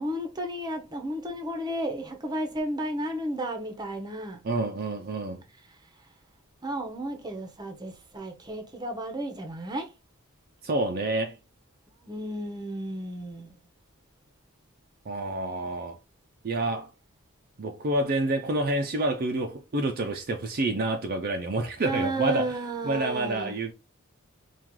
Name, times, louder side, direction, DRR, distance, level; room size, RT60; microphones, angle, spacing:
voice 1, 0.0-4.4 6.6-9.9 12.0-13.6 21.8-23.6, right 1 dB, 20° right, 0.8 m, -33 dB
voice 2, 4.4-5.4 10.6-11.4 15.1-16.0 16.4-16.9 17.6-22.6 22.8-23.7, right 2 dB, 45° right, 0.5 m, -28 dB
4.5 x 2.4 x 3.6 m
head